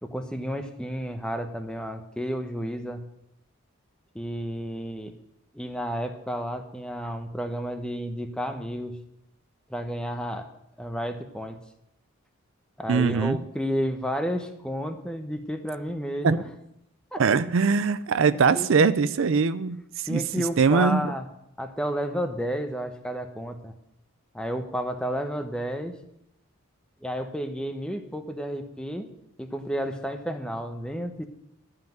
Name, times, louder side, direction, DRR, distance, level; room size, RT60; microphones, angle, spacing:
voice 1, 0.0-3.0 4.1-5.1 5.5-9.0 9.7-10.5 10.8-11.6 12.8-16.5 17.1-17.2 18.3-18.7 20.1-21.3 21.6-23.7 24.3-25.9 27.0-29.1 29.4-31.2, equal, 5° left, 6 dB, 0.8 m, -31 dB
voice 2, 12.9-13.4 16.2-16.4 17.2-19.8 20.1-20.2 20.6-21.1, right 5 dB, 60° right, 14 dB, 0.4 m, -21 dB
11.5 x 5.8 x 8.9 m, 0.81 s
head